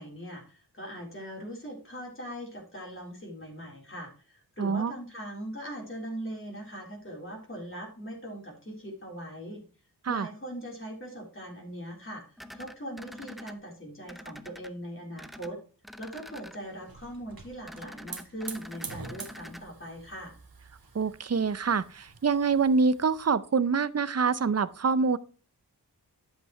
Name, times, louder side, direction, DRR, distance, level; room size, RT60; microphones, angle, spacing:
voice 1, 0.0-9.6 10.1-15.6 16.0-20.3, equal, 30° left, -1 dB, 3.9 m, -40 dB
voice 2, 4.6-4.9 10.0-10.3 20.9-25.2, right 5 dB, 40° right, 15 dB, 0.6 m, -25 dB
sound 1, 12.4-13.5 14.1-14.7 15.2-15.5 15.8-16.6 17.7-19.6, equal, ahead, 0.6 m, -45 dB
Hiss / Fire, 16.4-23.3, right 5 dB, 65° right, 1.7 m, -46 dB
10.5 x 7.8 x 3.1 m, 0.38 s
wide cardioid pair, 85°, 39 cm